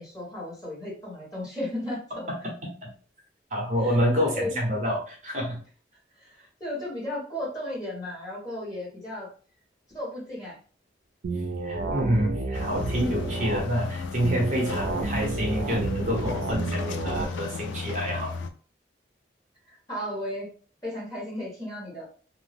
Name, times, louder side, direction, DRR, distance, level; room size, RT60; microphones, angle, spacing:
voice 1, 0.0-2.3 3.8-4.6 6.1-6.3 6.6-9.3 9.9-10.6 19.7-20.5 20.8-22.0, left 1 dB, 20° left, -6 dB, 1.3 m, -34 dB
voice 2, 3.5-5.6 11.6-18.3, equal, 40° right, -1 dB, 0.8 m, -27 dB
sound 1, 11.2-13.6 14.2-17.2, right 3 dB, 90° right, 0.5 m, -30 dB
sound 2, 12.5-18.5, left 4 dB, 90° left, 0.4 m, -35 dB
2.7 x 2.1 x 3.3 m, 0.41 s
head